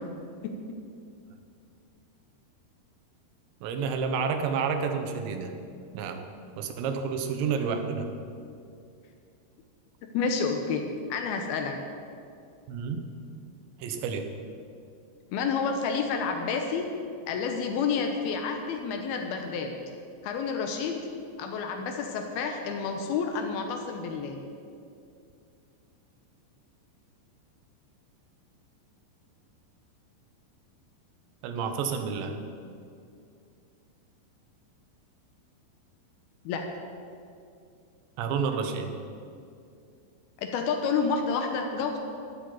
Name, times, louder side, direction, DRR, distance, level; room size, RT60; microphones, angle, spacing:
voice 1, 0.4-0.8 10.1-11.8 15.3-16.9 17.3-19.7 20.2-21.0 21.4-24.4 36.5-36.7 40.4-42.0, left 5 dB, 80° left, 4 dB, 2.3 m, -29 dB
voice 2, 3.6-5.5 5.9-6.2 6.6-8.1 12.7-13.1 13.8-14.2 31.4-32.4 38.2-38.9, right 5 dB, 75° right, 6 dB, 3.1 m, -30 dB
12.0 x 8.4 x 9.5 m, 2.4 s
omnidirectional pair, 5.5 m